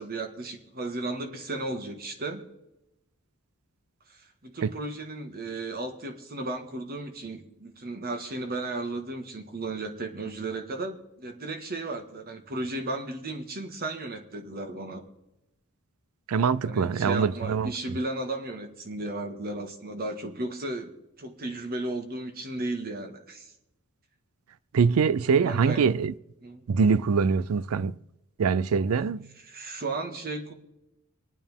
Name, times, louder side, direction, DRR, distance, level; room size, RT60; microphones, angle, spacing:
voice 1, 0.0-2.5 4.1-15.0 16.6-20.9 21.2-23.5 25.3-25.9 26.4-26.6 29.4-30.5, right 2 dB, 45° right, 1.6 m, -35 dB
voice 2, 16.3-17.7 24.7-26.1 26.7-28.0 28.4-29.3, right 5 dB, 90° right, 0.4 m, -23 dB
26.5 x 9.1 x 3.6 m
head